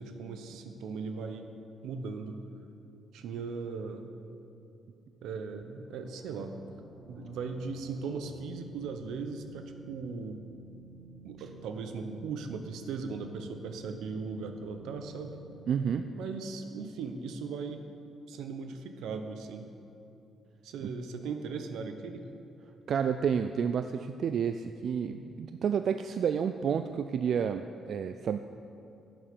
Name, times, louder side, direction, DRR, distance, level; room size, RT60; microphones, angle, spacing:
voice 1, 0.0-1.5 1.8-2.4 3.1-4.1 5.2-6.5 7.1-10.4 11.2-15.4 16.2-17.8 18.3-19.7 20.6-22.2, right 4 dB, 85° right, 7 dB, 0.9 m, -38 dB
sound 1, 5.9-17.4, right 3 dB, 40° right, 2.5 m, -52 dB
voice 2, 15.7-16.1 20.8-20.9 22.9-28.4, right 7 dB, 60° right, 9 dB, 0.3 m, -30 dB
10.5 x 7.2 x 6.8 m, 2.7 s
cardioid pair, 90°, 0 cm